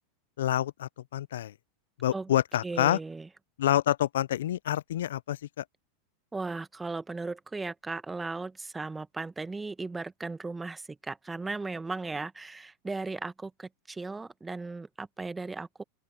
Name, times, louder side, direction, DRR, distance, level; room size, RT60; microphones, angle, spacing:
voice 1, 0.4-1.5 2.0-3.0 3.6-5.6, left 12 dB, 75° left, 0.6 m, -27 dB
voice 2, 2.6-3.3 6.3-15.8, right 3 dB, 15° right, 1.3 m, -36 dB
open air
hypercardioid pair, 90°, 0 cm